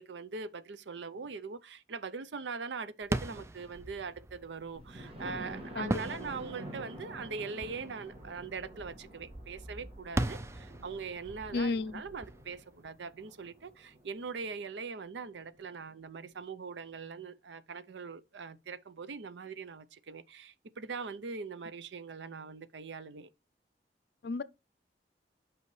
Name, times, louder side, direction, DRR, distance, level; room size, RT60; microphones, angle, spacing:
voice 1, 0.0-23.3, right 5 dB, 90° right, 0.6 m, -42 dB
sound 1, 3.0-13.6, right 1 dB, 15° right, 0.3 m, -40 dB
Thunder, 4.7-14.5 15.0-15.1 15.5-15.6 15.9-16.0, right 1 dB, 35° right, 1.6 m, -48 dB
voice 2, 11.5-12.0 24.2-24.4, left 3 dB, 65° left, 0.5 m, -32 dB
8.2 x 5.5 x 3.2 m
head